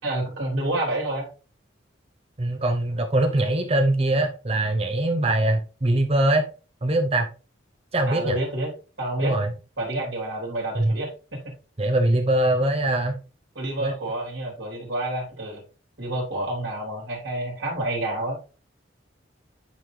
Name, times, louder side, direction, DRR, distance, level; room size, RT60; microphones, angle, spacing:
voice 1, 0.0-1.3 8.0-8.7 9.0-9.3 9.8-11.4 13.5-15.6 16.0-18.4, right 1 dB, 75° right, -4 dB, 3.5 m, -29 dB
voice 2, 2.4-6.4 6.8-7.3 7.9-8.4 9.2-9.5 10.8-11.0 11.8-13.2 13.8-13.9, right 1 dB, 30° right, 5 dB, 0.7 m, -22 dB
9.2 x 4.2 x 3.3 m, 0.34 s
head